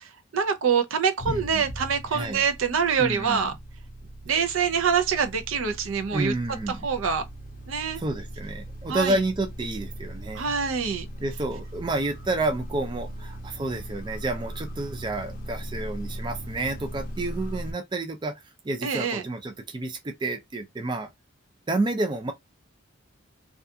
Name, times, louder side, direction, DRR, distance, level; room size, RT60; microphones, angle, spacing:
voice 1, 0.0-3.5 4.3-6.3 6.7-7.2 7.7-8.0 8.9-9.2 10.3-11.1 18.8-19.3, right 6 dB, 80° right, 0.5 m, -25 dB
sound 1, 1.2-17.7, right 1 dB, 40° left, 0.5 m, -39 dB
voice 2, 1.3-1.6 2.1-2.4 3.0-3.4 6.1-6.9 8.0-10.5 11.2-18.3 18.6-21.1 21.7-22.3, right 2 dB, 20° right, 0.3 m, -30 dB
2.4 x 2.3 x 2.6 m
head